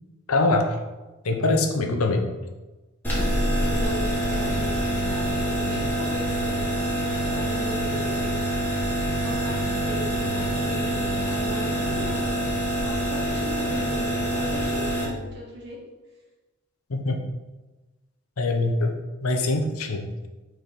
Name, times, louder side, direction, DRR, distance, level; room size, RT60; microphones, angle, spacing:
voice 1, 0.3-0.8 1.2-2.3 16.9-17.2 18.4-19.0 19.2-20.1, left 2 dB, 85° left, 4 dB, 0.8 m, -23 dB
voice 2, 1.8-2.3 3.1-8.4 9.2-15.8, equal, 55° right, -4 dB, 2.1 m, -38 dB
sound 1, 3.0-15.1, right 1 dB, 10° left, 1.7 m, -26 dB
4.8 x 4.5 x 5.1 m, 1.2 s
head